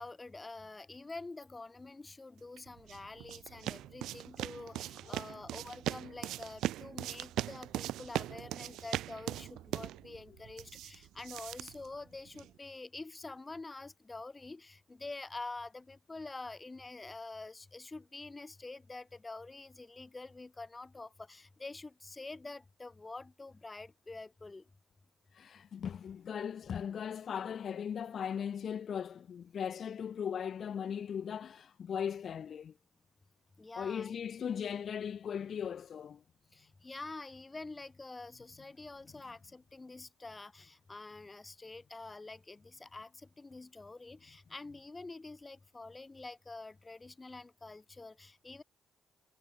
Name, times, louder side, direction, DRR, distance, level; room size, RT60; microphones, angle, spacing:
voice 1, 0.0-24.7 33.6-34.2 36.5-48.6, left 3 dB, 20° left, 4.0 m, -47 dB
sound 1, 2.6-12.6, right 14 dB, 85° right, 0.9 m, -40 dB
voice 2, 25.3-32.7 33.8-36.2, left 8 dB, 55° left, 0.7 m, -38 dB
cardioid pair, 90°, 0 cm